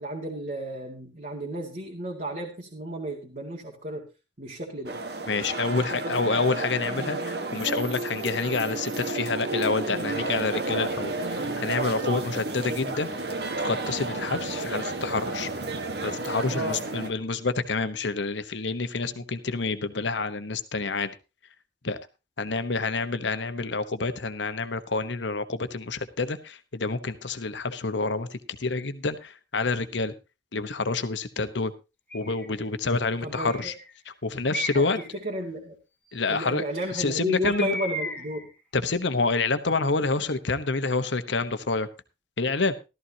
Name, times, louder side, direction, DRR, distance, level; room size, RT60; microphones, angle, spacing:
voice 1, 0.0-4.0 4.4-5.0 5.4-5.5 5.8-6.1 6.4-6.7 16.5-16.8 33.2-33.7 34.7-35.8 36.3-38.5, equal, 45° right, -2 dB, 2.0 m, -33 dB
sound 1, 4.9-17.1, right 2 dB, 60° right, 1.5 m, -31 dB
voice 2, 5.3-13.1 13.6-15.5 16.0-21.1 21.8-22.0 22.4-30.1 30.5-31.7 32.1-33.7 34.2-35.0 36.1-36.6 36.9-37.8 38.7-41.9 42.4-42.7, left 3 dB, 80° left, 10 dB, 1.1 m, -28 dB
Bird, 32.1-32.6 33.3-33.9 34.5-35.1 37.4-38.4, equal, 10° left, 1.6 m, -34 dB
14.0 x 13.5 x 2.9 m, 0.28 s
head